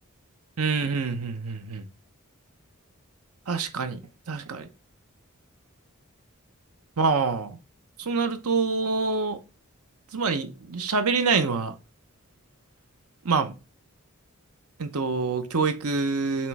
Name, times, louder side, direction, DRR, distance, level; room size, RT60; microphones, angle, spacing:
voice 1, 0.6-1.8 3.5-4.0 4.3-4.7 7.0-7.6 8.0-9.4 10.1-11.7 13.2-13.5 14.8-16.5, right 4 dB, 85° right, 0.8 m, -26 dB
7.3 x 3.1 x 4.7 m
head